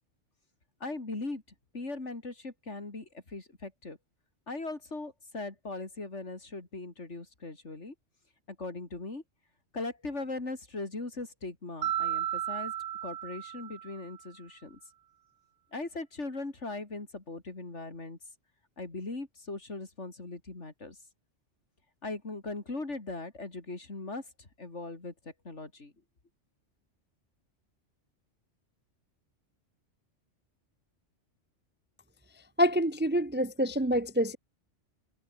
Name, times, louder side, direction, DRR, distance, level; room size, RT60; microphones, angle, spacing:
voice 1, 0.8-1.4 1.7-4.0 4.5-7.9 8.5-9.2 9.7-12.7 13.0-14.8 15.7-18.2 18.8-21.0 22.0-25.9, left 3 dB, 75° left, 4.0 m, -39 dB
Mallet percussion, 11.8-14.2, right 11 dB, 70° right, 1.0 m, -34 dB
voice 2, 32.6-34.4, equal, 10° right, 0.5 m, -26 dB
omnidirectional pair, 1.2 m